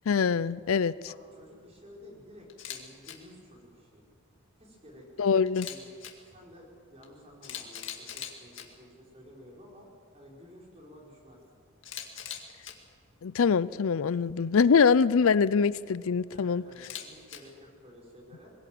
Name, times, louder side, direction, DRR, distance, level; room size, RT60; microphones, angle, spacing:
voice 1, 0.1-1.0 5.2-5.7 13.2-16.6, left 5 dB, 75° left, 18 dB, 0.5 m, -24 dB
voice 2, 1.0-4.0 4.6-5.3 5.6-5.9 6.3-9.9 10.1-11.6 16.3-18.5, left 1 dB, 30° right, -2 dB, 5.0 m, -52 dB
Camera, 2.5-2.8 3.0-3.1 5.5-6.1 7.0-7.1 7.4-8.6 11.8-12.7 16.8-17.4, left 10 dB, 60° left, 2.2 m, -40 dB
22.5 x 17.0 x 7.7 m, 2.2 s
head